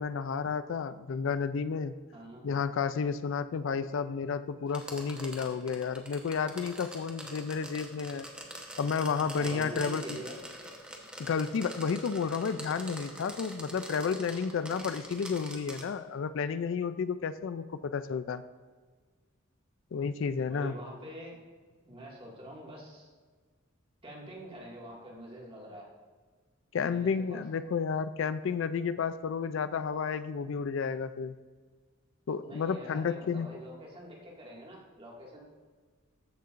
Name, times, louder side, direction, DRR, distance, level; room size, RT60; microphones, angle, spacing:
voice 1, 0.0-1.9 2.4-8.2 8.8-10.2 11.2-18.4 19.9-20.7 26.7-31.4 32.3-33.5, left 6 dB, 65° left, 12 dB, 0.4 m, -31 dB
voice 2, 2.1-2.4 9.4-10.4 20.5-21.4 21.9-23.1 24.0-25.9 26.9-27.4 32.4-35.4, right 1 dB, 25° right, -2 dB, 2.0 m, -45 dB
sound 1, 4.7-15.9, right 1 dB, 5° right, 1.0 m, -44 dB
14.5 x 6.7 x 2.5 m, 1.5 s
head